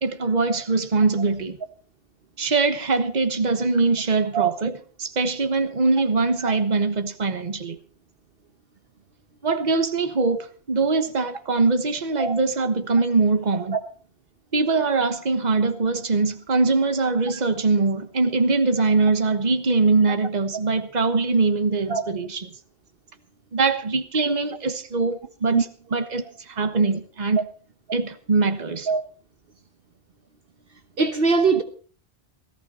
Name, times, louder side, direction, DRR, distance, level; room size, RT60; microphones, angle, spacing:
voice 1, 0.0-1.6 2.4-7.8 9.4-13.8 14.5-22.5 23.5-27.4 27.9-28.9, right 3 dB, 40° right, 1.3 m, -22 dB
voice 2, 31.0-31.6, right 5 dB, 60° right, 1.3 m, -21 dB
17.5 x 14.5 x 4.3 m
omnidirectional pair, 1.1 m